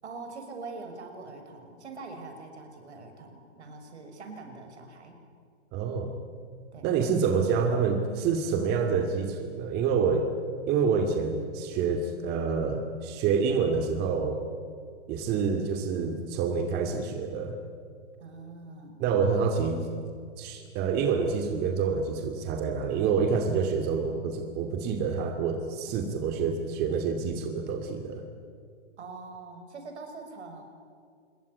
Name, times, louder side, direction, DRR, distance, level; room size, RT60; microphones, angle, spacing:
voice 1, 0.0-5.2 6.7-6.9 18.2-19.0 25.9-26.0 29.0-30.6, right 3 dB, 70° right, 6 dB, 6.6 m, -43 dB
voice 2, 5.7-6.1 6.8-10.3 10.7-14.4 15.1-17.6 19.0-19.8 20.4-28.2, right 5 dB, 30° right, 4 dB, 2.5 m, -27 dB
26.5 x 22.0 x 9.8 m, 2.3 s
hypercardioid pair, 140°, 35 cm